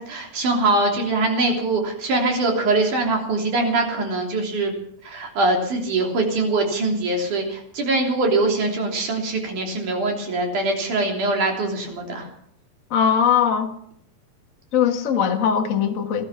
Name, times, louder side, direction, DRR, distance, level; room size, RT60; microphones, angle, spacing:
voice 1, 0.0-4.7 5.0-12.3, right 2 dB, 60° right, 1 dB, 4.6 m, -23 dB
voice 2, 12.9-13.7 14.7-16.2, left 8 dB, 90° left, 3 dB, 0.7 m, -20 dB
18.0 x 13.5 x 5.8 m, 0.69 s
omnidirectional pair, 4.2 m